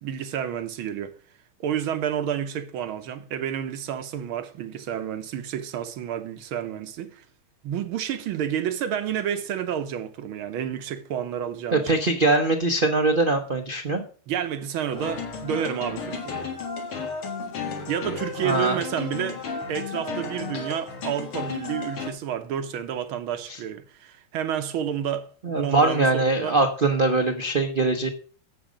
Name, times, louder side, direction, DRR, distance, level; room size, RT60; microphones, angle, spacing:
voice 1, 0.0-1.2 1.6-7.2 7.6-11.8 14.3-16.5 17.9-19.4 19.7-25.3 25.6-26.6, right 9 dB, 75° right, 1.8 m, -30 dB
voice 2, 11.7-14.0 18.4-18.8 23.5-23.6 25.4-28.1, right 3 dB, 45° right, 0.7 m, -22 dB
sound 1, 14.9-22.1, left 5 dB, 85° left, 2.7 m, -33 dB
11.5 x 7.8 x 5.1 m
omnidirectional pair, 2.3 m